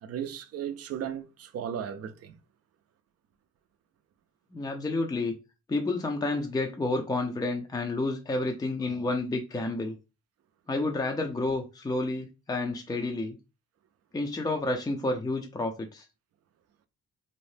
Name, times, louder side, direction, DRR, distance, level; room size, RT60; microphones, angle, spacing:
voice 1, 0.0-2.4, right 9 dB, 55° right, 0.4 m, -36 dB
voice 2, 4.5-5.4 5.7-10.0 10.7-13.4 14.1-16.1, left 2 dB, 15° left, 0.4 m, -30 dB
2.7 x 2.0 x 3.2 m
cardioid pair, 90°, 30 cm